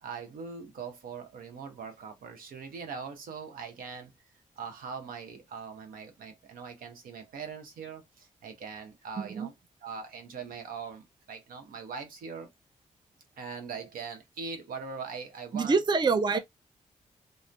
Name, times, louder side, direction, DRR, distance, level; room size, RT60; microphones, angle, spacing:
voice 1, 0.0-4.1 4.6-9.5 9.8-12.5 13.4-15.8 16.3-16.4, right 5 dB, 85° right, 0.8 m, -41 dB
voice 2, 9.2-9.5 15.5-16.4, right 4 dB, 30° right, 0.5 m, -26 dB
2.5 x 2.0 x 3.3 m
supercardioid pair, 55°, 14 cm